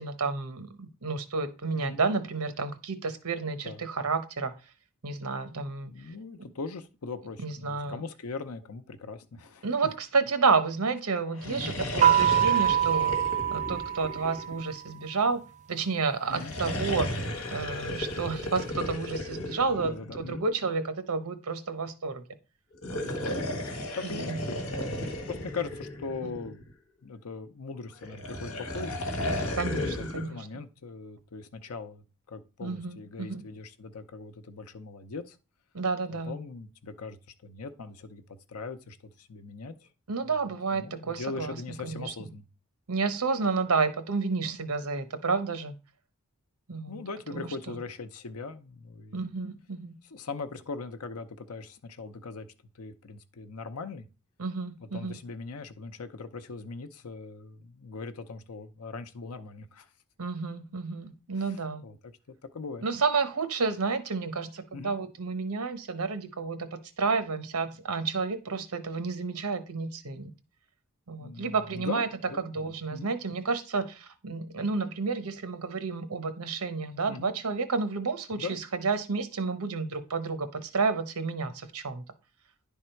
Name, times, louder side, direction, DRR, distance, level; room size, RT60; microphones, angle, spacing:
voice 1, 0.0-4.5 5.0-5.9 7.4-8.0 9.6-13.1 13.5-15.4 15.7-17.1 17.5-22.2 22.9-23.2 24.0-24.4 26.2-26.3 29.5-30.4 32.6-33.4 35.7-36.3 40.1-42.1 42.9-45.7 46.7-47.0 47.3-47.5 49.1-49.9 54.4-55.1 60.2-61.8 62.8-70.3 71.1-72.1 72.4-82.0, right 4 dB, 85° right, 0.9 m, -30 dB
voice 2, 5.8-9.7 11.5-11.7 16.3-16.5 19.7-20.4 23.2-23.7 23.9-24.6 24.9-26.7 27.0-29.0 30.1-35.4 36.3-38.2 38.5-39.7 40.2-40.3 40.7-42.5 46.9-49.2 50.1-52.5 52.8-54.1 54.9-59.9 61.8-62.0 62.5-62.8 64.7-64.9 71.2-72.0 72.3-72.5 72.9-73.1 77.1-77.3 78.4-78.6, left 4 dB, 85° left, 0.7 m, -40 dB
sound 1, 11.3-14.9 16.2-20.5 22.7-26.7 28.0-30.3, left 1 dB, 65° left, 1.6 m, -34 dB
sound 2, 12.0-14.7, right 10 dB, 35° right, 0.4 m, -24 dB
10.5 x 3.6 x 4.5 m
head